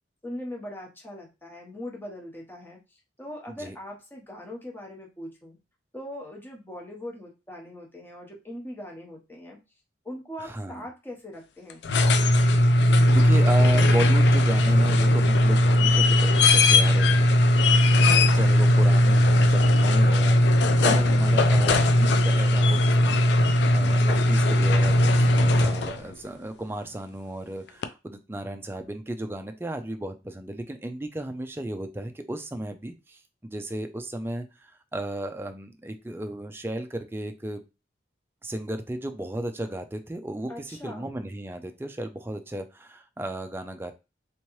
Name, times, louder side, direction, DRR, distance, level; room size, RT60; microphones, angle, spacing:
voice 1, 0.2-5.6 5.9-9.6 10.0-11.8 20.9-21.2 40.5-41.2, left 1 dB, 10° left, 0 dB, 0.9 m, -40 dB
voice 2, 10.4-10.9 12.8-17.4 18.2-23.3 23.7-37.6 38.4-43.9, right 1 dB, 10° right, 7 dB, 0.3 m, -34 dB
sound 1, 11.7-26.1 27.8-27.9, left 1 dB, 60° left, 0.4 m, -19 dB
3.5 x 3.0 x 3.1 m, 0.28 s
head